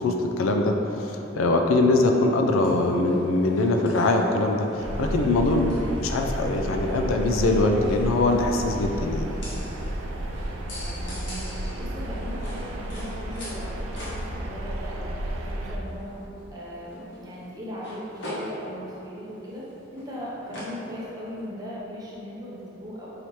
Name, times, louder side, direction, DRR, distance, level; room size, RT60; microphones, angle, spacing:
voice 1, 0.0-9.3, left 2 dB, 85° left, 3 dB, 0.4 m, -22 dB
sound 1, 2.5-21.4, equal, 60° left, 1.0 m, -42 dB
sound 2, 4.8-15.8, right 1 dB, 85° right, 0.4 m, -32 dB
voice 2, 10.7-16.1 16.5-19.6 19.9-23.1, equal, 20° right, -7 dB, 0.7 m, -38 dB
4.8 x 2.8 x 3.0 m, 3.0 s
head